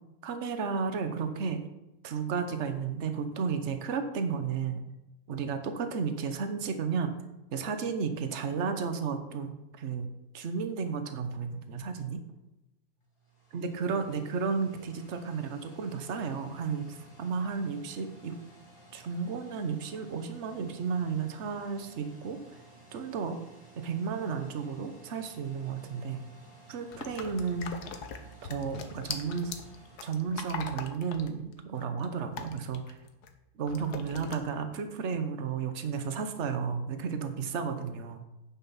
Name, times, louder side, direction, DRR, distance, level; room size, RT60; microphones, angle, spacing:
voice 1, 0.2-1.6 2.0-4.8 5.3-7.2 7.5-10.1 10.3-12.2 13.5-18.4 18.9-22.4 22.9-23.4 23.7-26.2 26.7-27.7 28.4-29.6 30.0-33.0 33.5-38.2, right 5 dB, 50° right, 7 dB, 1.2 m, -33 dB
sound 1, 13.0-31.1, right 2 dB, 20° left, 2.4 m, -55 dB
sound 2, 26.9-33.3 33.7-34.3, left 6 dB, 90° left, 1.5 m, -41 dB
9.4 x 6.3 x 5.7 m, 0.97 s
omnidirectional pair, 1.6 m